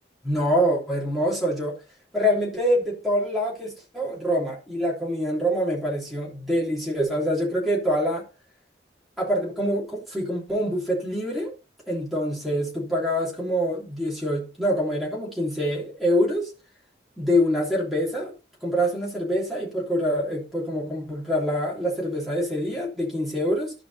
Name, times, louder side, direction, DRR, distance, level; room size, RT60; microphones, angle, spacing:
voice 1, 0.2-1.8 2.1-8.2 9.2-11.5 11.9-16.5 17.2-18.3 18.6-23.7, equal, ahead, -5 dB, 3.2 m, -25 dB
12.5 x 5.1 x 4.2 m, 0.34 s
head